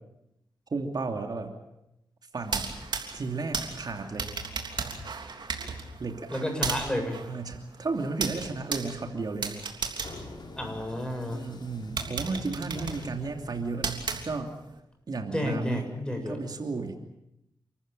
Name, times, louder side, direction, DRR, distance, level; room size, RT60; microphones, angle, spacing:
voice 1, 0.7-1.6 2.3-2.7 3.1-4.3 6.0-6.3 7.2-9.6 11.3-14.6 15.1-16.0 16.3-17.0, right 3 dB, 60° right, 4 dB, 2.8 m, -33 dB
sound 1, 2.4-11.1 11.6-11.7 12.0-14.7, right 5 dB, 75° right, 3.4 m, -35 dB
voice 2, 6.3-7.2 10.6-11.5 15.3-16.4, left 1 dB, 10° left, 4 dB, 7.6 m, -31 dB
sound 2, 9.5-14.3, left 2 dB, 70° left, 4.5 m, -46 dB
30.0 x 14.5 x 9.0 m, 0.86 s
cardioid pair, 65°, 8 cm